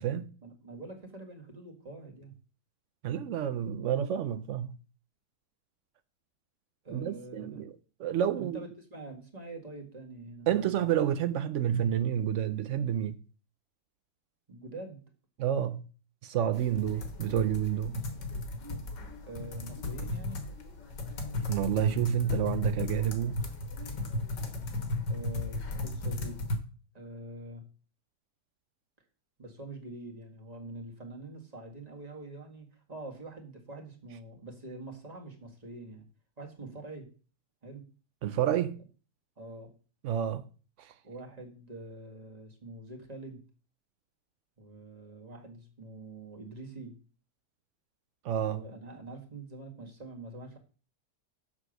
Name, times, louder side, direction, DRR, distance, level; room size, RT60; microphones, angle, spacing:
voice 1, 0.4-2.3 6.8-7.6 8.4-10.9 14.5-15.0 19.3-20.5 25.1-26.4 26.9-27.7 29.4-36.1 36.4-37.1 37.6-37.9 39.4-39.7 41.0-43.5 44.6-47.0 48.5-50.6, right 2 dB, 25° right, 1.9 m, -45 dB
voice 2, 3.0-4.8 6.9-7.7 8.0-8.6 10.5-13.2 15.4-15.8 16.2-18.0 21.3-23.4 38.2-38.8 40.0-40.4 40.8-40.9 48.2-48.6, right 10 dB, 85° right, 0.6 m, -29 dB
sound 1, 16.5-26.6, left 2 dB, 75° left, 2.1 m, -35 dB
7.4 x 6.1 x 6.5 m
omnidirectional pair, 1.9 m